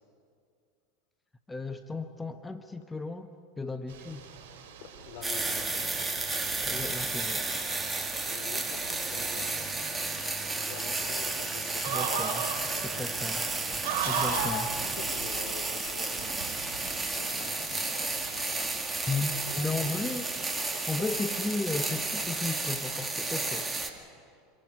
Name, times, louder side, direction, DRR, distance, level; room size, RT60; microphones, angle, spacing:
voice 1, 1.5-3.3 3.6-4.3 6.6-7.4 11.9-12.5 12.8-13.5 14.0-14.7 19.1-19.3 19.6-20.3 20.9-24.2, left 3 dB, 10° left, 8 dB, 0.9 m, -34 dB
sound 1, 3.9-23.6, right 6 dB, 65° right, 3.5 m, -40 dB
voice 2, 4.8-6.0 6.4-6.5 8.2-9.7 10.5-12.2 12.6-13.1 14.8-20.0, left 6 dB, 65° left, 5 dB, 3.6 m, -47 dB
sound 2, 5.2-23.9, right 3 dB, 15° right, 2.1 m, -32 dB
sound 3, 5.3-14.9, right 6 dB, 35° right, 1.1 m, -46 dB
25.5 x 22.5 x 4.7 m, 2.3 s
hypercardioid pair, 90°, 0 cm